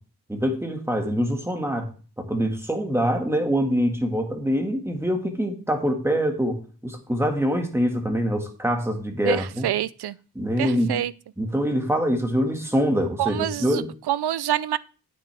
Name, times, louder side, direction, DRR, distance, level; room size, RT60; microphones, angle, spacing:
voice 1, 0.3-1.9 2.2-9.7 10.4-11.0 11.4-13.9, equal, 5° right, 1.9 m, -24 dB
voice 2, 9.3-10.2 10.6-11.1 13.2-13.8 14.1-14.8, right 12 dB, 80° right, 0.5 m, -26 dB
9.3 x 9.2 x 3.5 m
wide cardioid pair, 90°, 39 cm